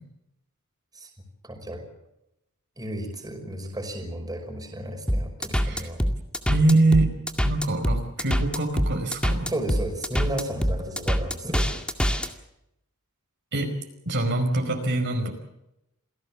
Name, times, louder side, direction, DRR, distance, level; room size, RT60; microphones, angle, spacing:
voice 1, 1.4-1.8 2.8-6.0 9.5-11.7, right 1 dB, 20° right, 3 dB, 5.5 m, -33 dB
sound 1, 5.1-12.3, equal, 5° left, 2.1 m, -24 dB
voice 2, 6.5-7.1 7.4-9.5 13.5-13.7 14.0-15.3, right 2 dB, 55° right, 3 dB, 5.0 m, -24 dB
28.0 x 17.5 x 7.4 m, 0.84 s
head